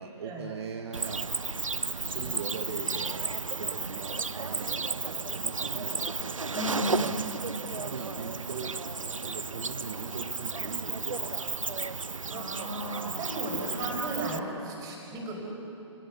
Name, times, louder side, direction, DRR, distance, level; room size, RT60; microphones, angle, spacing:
voice 1, 0.0-1.4 2.1-6.1 6.7-7.2 7.7-8.8 9.1-11.5, right 6 dB, 55° right, 4 dB, 1.3 m, -40 dB
Cricket, 0.9-14.4, right 4 dB, 90° right, 0.6 m, -33 dB
voice 2, 2.0-2.3 6.5-7.1 12.3-15.5, right 1 dB, 20° right, -1 dB, 5.2 m, -35 dB
27.5 x 17.5 x 6.9 m, 3.0 s
figure-of-eight pair, 130°, 16 cm